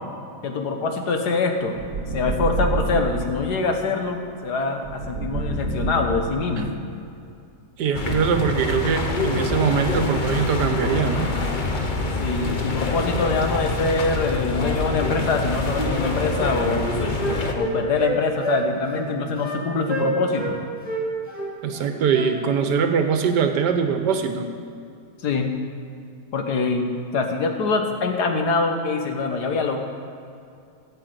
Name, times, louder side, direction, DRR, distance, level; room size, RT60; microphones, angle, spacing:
voice 1, 0.4-1.8 2.1-6.7 12.2-16.9 17.5-20.6 25.2-25.5 26.3-26.9 27.1-29.8, left 4 dB, 70° left, 4 dB, 1.7 m, -24 dB
sound 1, 1.7-3.3 4.8-6.7, right 3 dB, 55° right, 1.5 m, -27 dB
voice 2, 7.8-11.3 21.6-24.5, right 6 dB, 80° right, 7 dB, 1.5 m, -22 dB
sound 2, 7.9-17.5, left 3 dB, 35° left, 0.9 m, -25 dB
Wind instrument woodwind instrument, 16.4-18.1 18.4-18.6 18.9-19.0 19.4-19.6 19.9-20.5 20.8-22.7, right 2 dB, 5° right, 2.6 m, -28 dB
13.0 x 6.6 x 7.9 m, 2.5 s
omnidirectional pair, 1.8 m